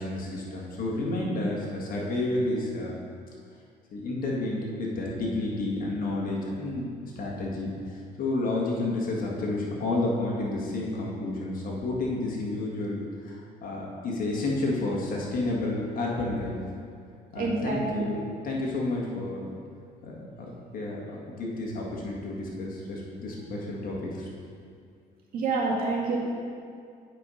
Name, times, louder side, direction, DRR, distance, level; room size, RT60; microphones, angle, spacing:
voice 1, 0.0-3.0 3.9-7.7 8.2-16.5 17.3-19.5 20.0-21.0 21.4-24.3, left 2 dB, 55° left, -3 dB, 1.8 m, -30 dB
voice 2, 17.4-18.1 25.3-26.2, right 3 dB, 60° right, -3 dB, 1.8 m, -27 dB
8.4 x 4.7 x 5.0 m, 2.3 s
cardioid pair, 110°, 17 cm